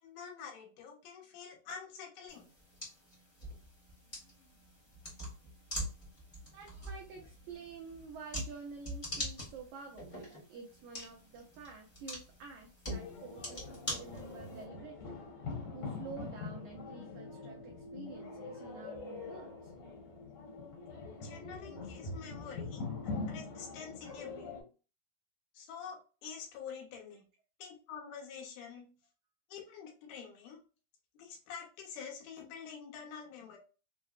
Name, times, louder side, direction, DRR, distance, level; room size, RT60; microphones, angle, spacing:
voice 1, 0.0-2.5 21.2-22.8 23.3-24.5 25.5-27.2 27.6-28.9 29.5-30.6 31.1-33.6, left 6 dB, 90° left, 0 dB, 2.9 m, -47 dB
sound 1, 2.3-14.6, equal, 30° left, 0.8 m, -44 dB
voice 2, 6.5-15.2 15.5-19.7, right 4 dB, 85° right, 0 dB, 1.7 m, -49 dB
sound 2, 12.9-24.6, left 3 dB, 65° left, 1.8 m, -43 dB
6.1 x 2.0 x 2.5 m, 0.34 s
omnidirectional pair, 4.3 m